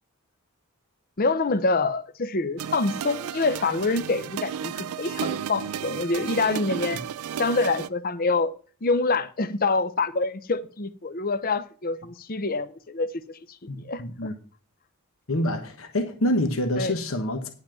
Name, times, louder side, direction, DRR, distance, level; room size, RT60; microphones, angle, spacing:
voice 1, 1.2-7.0 7.4-8.5 8.8-14.3 16.8-16.9, left 3 dB, 40° left, 0.7 m, -26 dB
sound 1, 2.6-7.9, right 8 dB, 85° right, 0.4 m, -33 dB
voice 2, 13.7-14.3 15.3-17.5, left 1 dB, 65° left, 1.2 m, -26 dB
10.5 x 5.7 x 5.8 m
head